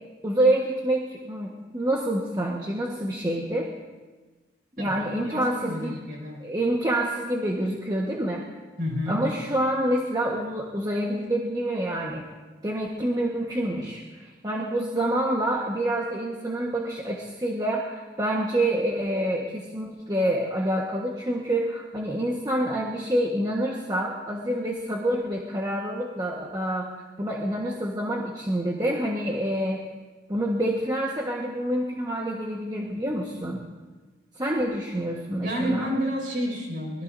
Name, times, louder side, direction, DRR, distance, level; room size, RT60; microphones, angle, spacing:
voice 1, 0.2-3.7 4.8-5.9 6.4-8.4 9.1-12.3 12.6-26.9 27.2-29.8 30.3-33.6 34.4-35.9, right 1 dB, 20° right, -3 dB, 1.4 m, -27 dB
voice 2, 4.8-6.5 8.8-9.2 35.4-37.0, equal, 50° right, -1 dB, 5.9 m, -30 dB
24.0 x 20.5 x 2.7 m, 1.3 s
head